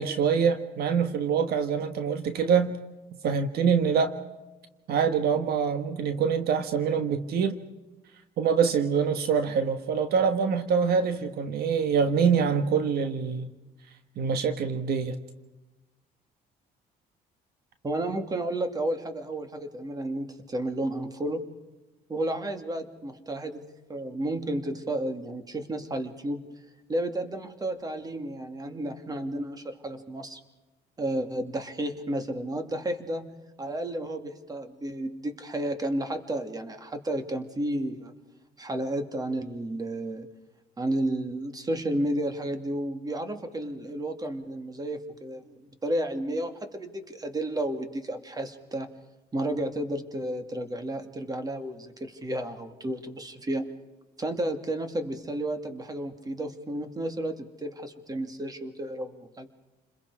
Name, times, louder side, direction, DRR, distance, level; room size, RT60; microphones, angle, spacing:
voice 1, 0.0-2.7 3.2-4.2 4.9-7.6 8.4-13.5 14.2-15.1, right 6 dB, 70° right, 9 dB, 1.5 m, -25 dB
voice 2, 17.8-21.5 22.1-23.6 23.9-26.5 26.9-30.4 31.0-38.1 38.6-40.3 40.8-48.9 49.3-53.7 54.2-59.5, right 1 dB, 20° right, 7 dB, 2.5 m, -32 dB
29.5 x 21.5 x 4.9 m, 1.1 s
cardioid pair, 110°, 17 cm